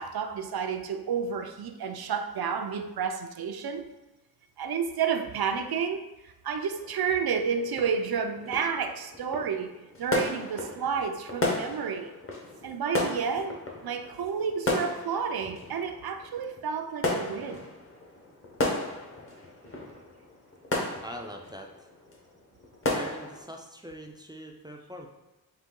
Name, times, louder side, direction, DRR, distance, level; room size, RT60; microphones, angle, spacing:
voice 1, 0.0-3.9 4.6-12.1 12.6-17.7, right 6 dB, 70° right, 7 dB, 0.5 m, -31 dB
sound 1, 6.7-23.4, left 2 dB, 35° left, 0.9 m, -35 dB
voice 2, 21.0-21.9 22.9-25.1, equal, 10° right, 2 dB, 0.3 m, -42 dB
4.0 x 2.8 x 3.7 m, 1.1 s
wide cardioid pair, 115°, 38 cm